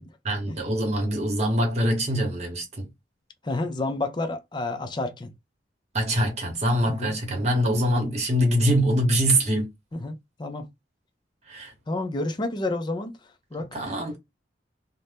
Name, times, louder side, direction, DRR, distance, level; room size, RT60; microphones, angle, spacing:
voice 1, 0.2-2.9 5.9-9.7 11.5-11.7 13.7-14.2, equal, 40° right, 1.0 m, -24 dB
voice 2, 3.4-5.3 6.9-7.1 9.9-10.7 11.9-13.1 13.5-13.9, left 2 dB, 25° left, 0.4 m, -30 dB
2.6 x 2.1 x 3.3 m
head